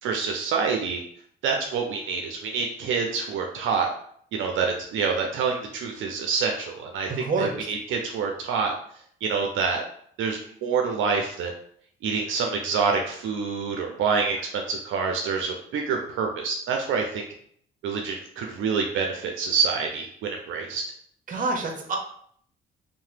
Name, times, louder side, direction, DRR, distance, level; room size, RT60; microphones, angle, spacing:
voice 1, 0.0-1.0 1.4-3.9 4.3-8.7 9.2-9.8 10.2-11.5 12.0-17.3 17.8-20.8, right 5 dB, 80° right, 2 dB, 0.4 m, -27 dB
voice 2, 7.1-7.7 21.3-22.0, right 3 dB, 45° right, 3 dB, 0.7 m, -27 dB
2.7 x 2.0 x 3.2 m, 0.63 s
cardioid pair, 90°, 20 cm